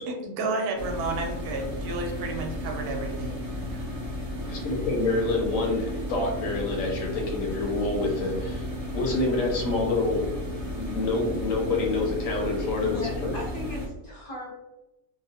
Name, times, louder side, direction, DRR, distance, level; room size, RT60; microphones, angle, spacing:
voice 1, 0.1-3.4 3.7-4.0, right 2 dB, 85° right, 2 dB, 1.1 m, -31 dB
sound 1, 0.8-13.9, left 1 dB, 65° right, 0.3 m, -34 dB
voice 2, 4.4-10.3 10.7-13.3, left 2 dB, 70° left, 0 dB, 1.0 m, -27 dB
voice 3, 12.8-14.6, left 2 dB, 45° left, -4 dB, 0.7 m, -38 dB
2.8 x 2.1 x 2.7 m, 0.98 s
omnidirectional pair, 1.6 m